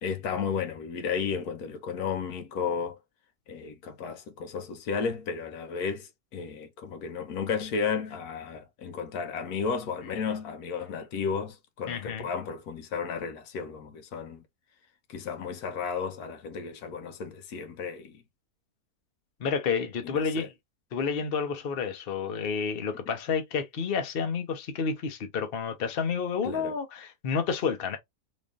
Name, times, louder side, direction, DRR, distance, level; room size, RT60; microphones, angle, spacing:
voice 1, 0.0-3.0 3.5-14.4 15.1-18.2 20.0-20.5 26.4-26.7, left 6 dB, 85° left, 1.3 m, -33 dB
voice 2, 11.9-12.3 19.4-20.5 20.9-28.0, left 5 dB, 45° left, 0.9 m, -30 dB
3.5 x 3.1 x 2.5 m
omnidirectional pair, 1.6 m